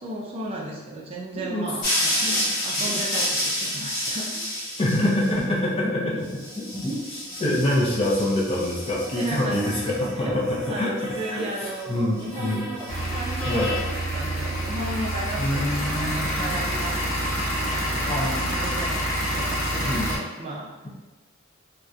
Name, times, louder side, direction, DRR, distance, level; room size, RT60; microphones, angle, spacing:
voice 1, 0.0-2.3 2.6-4.4 5.0-5.1 5.8-6.2 6.5-7.1 9.2-10.4 10.7-17.3 17.6-20.7, right 1 dB, 30° right, -4 dB, 0.4 m, -35 dB
voice 2, 1.3-1.7 2.2-3.3 3.8-3.9 4.8-5.9 6.7-10.9 11.3-12.7 13.4-13.7 15.4-16.7 18.1-18.9 19.8-20.1, left 1 dB, 30° left, -4 dB, 0.5 m, -26 dB
sound 1, 1.8-5.3 6.3-10.1 10.4-11.8 12.2-13.8, left 1 dB, 45° left, 0.8 m, -30 dB
sound 2, 12.9-20.2, right 1 dB, 85° left, 0.6 m, -27 dB
2.7 x 2.1 x 2.3 m, 1.2 s
head